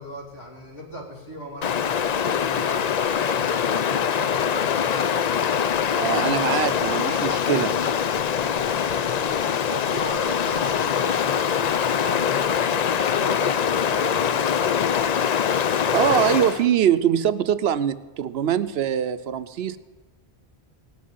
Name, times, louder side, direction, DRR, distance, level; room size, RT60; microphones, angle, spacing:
voice 1, 0.0-5.4 8.8-14.8, equal, 75° left, -2 dB, 3.3 m, -39 dB
Stream, 1.6-16.7, left 8 dB, 50° left, 0.5 m, -23 dB
voice 2, 6.0-7.7 15.9-19.8, right 9 dB, 70° right, 14 dB, 0.8 m, -23 dB
17.0 x 6.3 x 9.2 m, 1.2 s
omnidirectional pair, 1.1 m